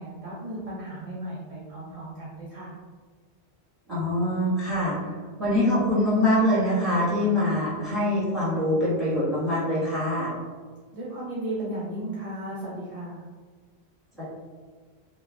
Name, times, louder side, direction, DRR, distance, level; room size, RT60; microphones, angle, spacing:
voice 1, 0.0-2.7 10.9-13.2, right 1 dB, 45° right, -6 dB, 0.5 m, -35 dB
voice 2, 3.9-5.0 5.4-10.3 14.2-14.3, left 1 dB, ahead, -12 dB, 1.4 m, -24 dB
3.0 x 2.2 x 2.4 m, 1.5 s
omnidirectional pair, 1.1 m